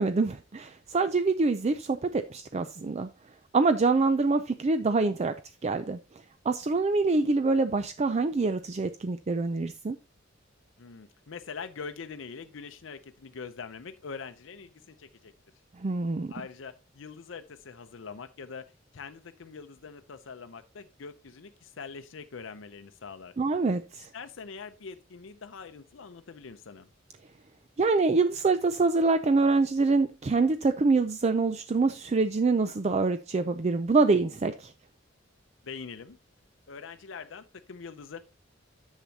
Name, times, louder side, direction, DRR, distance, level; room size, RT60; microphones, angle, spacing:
voice 1, 0.0-3.1 3.5-5.3 5.6-6.0 6.5-10.0 15.8-16.3 23.4-24.1 27.8-34.7, right 3 dB, 35° right, 0.4 m, -25 dB
voice 2, 10.8-15.3 16.3-23.3 23.9-26.9 35.6-36.2 36.7-38.2, left 5 dB, 75° left, 0.6 m, -43 dB
10.5 x 7.3 x 2.8 m
head